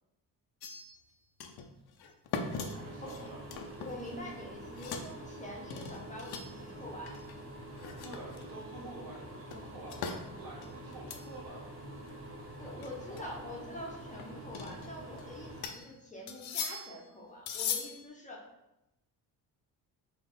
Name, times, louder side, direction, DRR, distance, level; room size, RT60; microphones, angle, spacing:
sound 1, 0.6-1.1 1.4-1.7 2.0-4.4 4.6-5.1 5.7-6.7 7.1-7.3 7.8-8.6 9.5-10.2 10.6-11.3 11.6-11.7 12.1-12.2 12.8-13.2 14.2-15.2 15.6-15.9 16.3-17.0 17.5-18.1, left 6 dB, 75° left, 0.6 m, -39 dB
sound 2, 2.4-15.7, right 1 dB, 35° right, 0.9 m, -47 dB
voice 1, 2.6-3.7 8.0-11.7 12.6-13.6, right 1 dB, 60° right, -3 dB, 1.4 m, -49 dB
voice 2, 3.8-7.2 12.6-18.4, left 1 dB, 20° left, -3 dB, 0.8 m, -45 dB
3.9 x 2.4 x 3.7 m, 0.90 s
cardioid pair, 100°, 39 cm